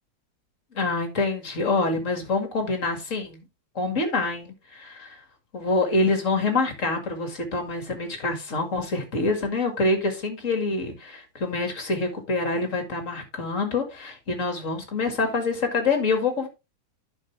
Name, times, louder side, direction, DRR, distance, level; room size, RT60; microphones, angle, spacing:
voice 1, 0.7-3.4 3.8-5.2 5.5-16.5, left 3 dB, 40° left, 5 dB, 2.3 m, -26 dB
10.5 x 5.9 x 3.3 m, 0.26 s
omnidirectional pair, 2.1 m